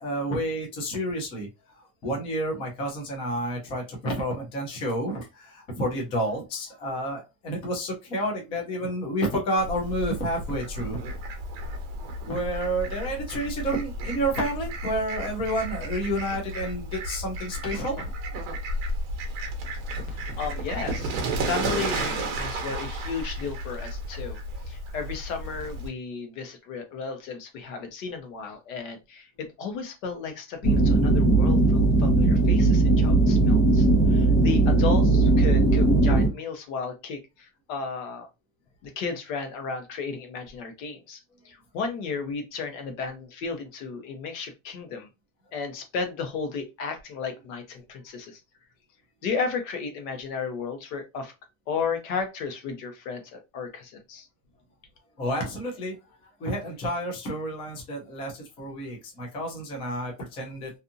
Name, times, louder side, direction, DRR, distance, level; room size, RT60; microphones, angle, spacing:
voice 1, 0.0-1.5 2.0-11.0 12.2-18.1 55.2-56.0 56.2-60.7, right 1 dB, 15° left, 0 dB, 0.3 m, -30 dB
Fowl, 9.6-25.9, right 1 dB, 40° right, 0.7 m, -33 dB
voice 2, 20.1-21.2 21.4-24.4 24.7-38.3 38.8-41.2 41.4-45.1 45.5-48.4 49.2-51.3 51.7-54.3, left 5 dB, 75° left, 6 dB, 0.9 m, -34 dB
sound 1, 30.6-36.3, right 2 dB, 50° left, 1.2 m, -19 dB
2.6 x 2.4 x 2.6 m, 0.25 s
cardioid pair, 175°, 40 cm